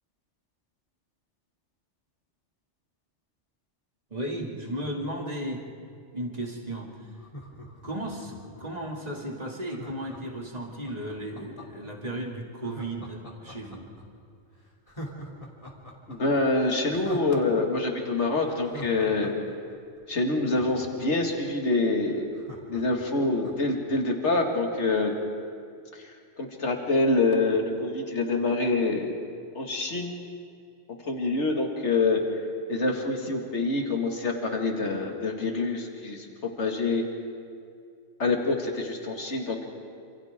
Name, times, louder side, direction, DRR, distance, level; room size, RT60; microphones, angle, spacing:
voice 1, 4.1-5.6 6.1-7.1 7.8-13.9, right 1 dB, 35° right, -1 dB, 2.6 m, -35 dB
Laughter, 7.1-8.8 9.7-11.9 12.6-14.0 14.4-14.5 14.9-17.6 17.9-18.0 18.4-21.3 21.7-21.8 22.0-23.8 24.1-24.2, equal, 30° left, 3.0 m, -43 dB
voice 2, 16.1-19.3 20.1-22.2 22.7-25.1 25.9-29.1 29.5-30.1 31.1-32.2 32.7-36.3 36.6-37.0 38.2-39.7, left 3 dB, 70° left, 2 dB, 2.4 m, -26 dB
28.0 x 27.0 x 3.7 m, 2.3 s
omnidirectional pair, 1.2 m